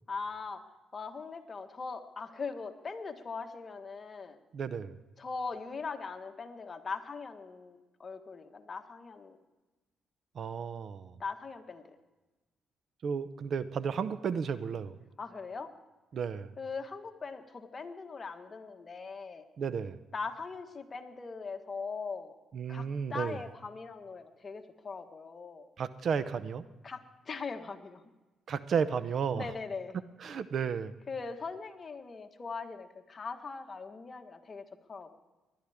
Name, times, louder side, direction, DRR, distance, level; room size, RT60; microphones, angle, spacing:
voice 1, 0.1-0.6 0.9-4.4 5.2-9.4 11.2-11.9 15.2-15.7 16.6-19.5 20.1-22.3 22.7-25.7 26.8-28.0 29.3-30.0 31.1-35.1, left 4 dB, 35° left, 5 dB, 1.4 m, -40 dB
voice 2, 4.5-5.0 10.3-11.1 13.0-15.0 16.1-16.5 19.6-20.0 22.5-23.4 25.8-26.6 28.5-29.5 30.2-30.9, right 6 dB, 55° right, 14 dB, 0.6 m, -33 dB
19.5 x 11.5 x 3.5 m, 1.1 s
cardioid pair, 90°, 0 cm